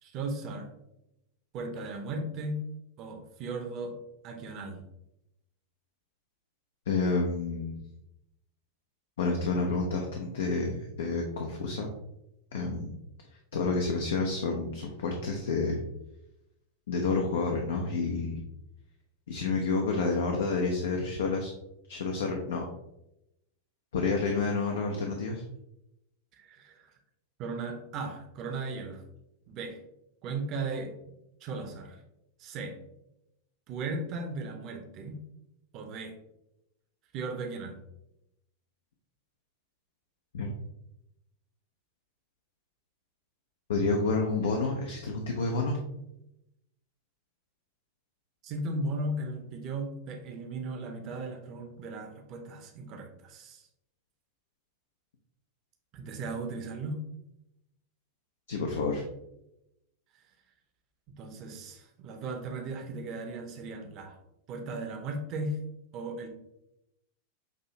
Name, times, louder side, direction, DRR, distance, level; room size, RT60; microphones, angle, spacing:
voice 1, 0.0-0.7 1.5-2.6 3.0-4.8 26.3-26.9 27.4-29.0 29.5-29.8 30.2-30.9 31.4-32.0 32.4-32.8 33.7-35.2 35.7-36.1 37.1-37.8 48.4-53.7 55.9-57.0 61.2-64.2 64.5-65.6 65.9-66.3, right 2 dB, 40° right, 5 dB, 0.7 m, -36 dB
voice 2, 6.9-7.8 9.2-11.9 12.5-12.9 13.5-15.8 16.9-18.4 19.3-21.5 21.9-22.6 23.9-25.4 40.3-40.5 43.7-45.8 58.5-59.0, left 3 dB, 60° left, 2 dB, 0.5 m, -29 dB
6.1 x 2.7 x 2.7 m, 0.85 s
figure-of-eight pair, 90°, 0 cm